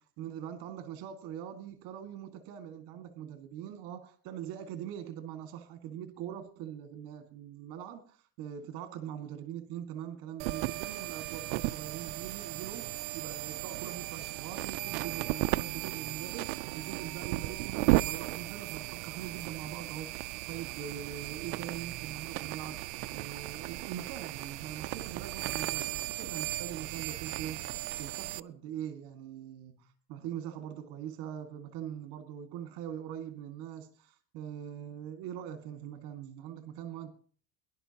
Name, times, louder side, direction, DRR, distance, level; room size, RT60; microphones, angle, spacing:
voice 1, 0.0-37.1, right 9 dB, 50° right, 2.0 m, -42 dB
sound 1, 10.4-28.4, right 19 dB, 75° right, 0.7 m, -35 dB
23.0 x 11.5 x 2.9 m
cardioid pair, 175°, 49 cm